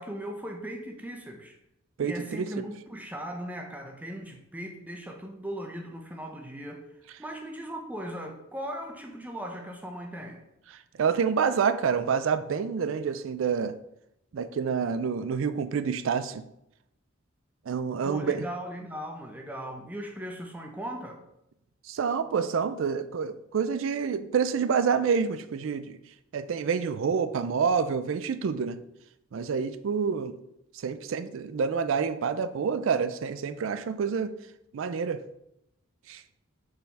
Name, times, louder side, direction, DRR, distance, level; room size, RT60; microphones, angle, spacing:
voice 1, 0.0-1.6 2.0-6.8 7.2-10.5 18.0-21.2, equal, 10° right, 3 dB, 0.6 m, -38 dB
voice 2, 2.0-2.5 11.0-13.7 14.3-16.4 17.7-18.4 21.9-26.0 26.3-28.8 29.3-30.4 30.8-34.3 34.7-35.2 36.1-36.2, right 6 dB, 70° right, 12 dB, 0.4 m, -28 dB
6.6 x 4.0 x 4.1 m, 0.82 s
head